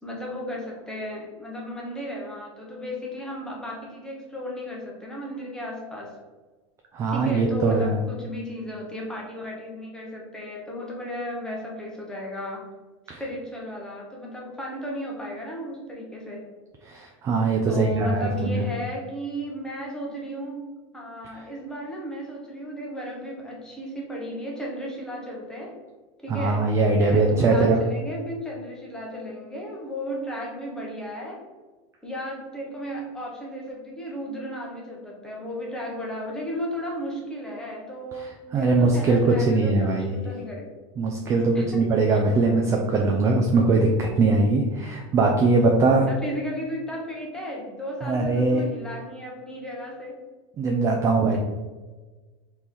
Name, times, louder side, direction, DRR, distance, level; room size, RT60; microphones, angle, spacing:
voice 1, 0.0-6.2 7.1-12.7 13.2-16.5 17.7-25.8 26.2-31.5 32.0-40.7 41.5-42.2 45.9-50.2, equal, 5° left, -3 dB, 0.8 m, -34 dB
voice 2, 6.9-8.0 13.1-13.2 16.8-18.6 26.3-27.8 38.2-40.3 41.0-46.0 48.0-48.6 50.6-51.4, right 3 dB, 20° right, 1 dB, 0.3 m, -21 dB
4.2 x 3.0 x 3.4 m, 1.3 s
supercardioid pair, 155°, 16 cm